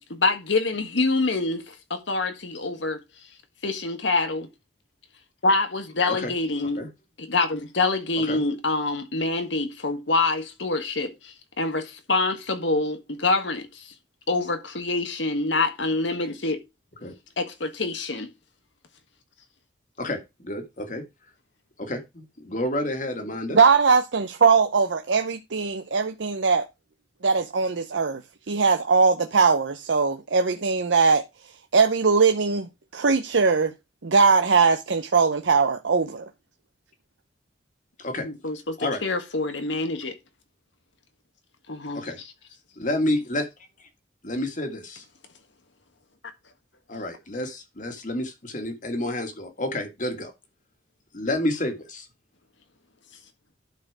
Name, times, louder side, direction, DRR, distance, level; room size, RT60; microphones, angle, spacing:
voice 1, 0.1-3.0 3.6-4.5 5.4-6.8 7.2-13.9 14.3-16.6 17.4-18.3 38.2-40.2 41.7-42.0, left 3 dB, 85° left, 1.6 m, -26 dB
voice 2, 20.0-21.0 21.8-23.6 38.0-38.3 38.8-39.0 41.9-42.2 42.8-43.4 44.2-45.0 46.9-50.3 51.1-52.1, left 1 dB, 45° left, 1.8 m, -29 dB
voice 3, 23.5-26.7 27.2-28.2 28.5-31.2 31.7-33.7 34.0-36.2, right 5 dB, 85° right, 0.7 m, -20 dB
11.5 x 4.4 x 4.7 m
head